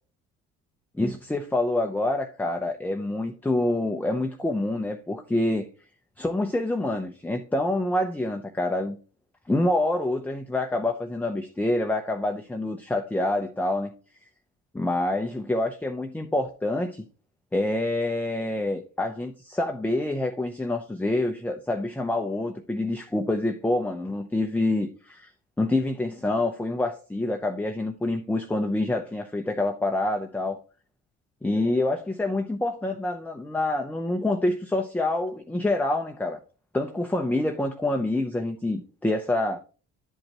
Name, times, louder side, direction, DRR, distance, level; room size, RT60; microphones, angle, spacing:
voice 1, 1.0-5.6 6.2-9.0 9.5-13.9 14.7-17.0 17.5-25.3 25.6-30.6 31.4-36.4 36.7-39.6, left 2 dB, 5° left, 0.6 m, -27 dB
11.0 x 5.1 x 2.9 m
cardioid pair, 90°, 30 cm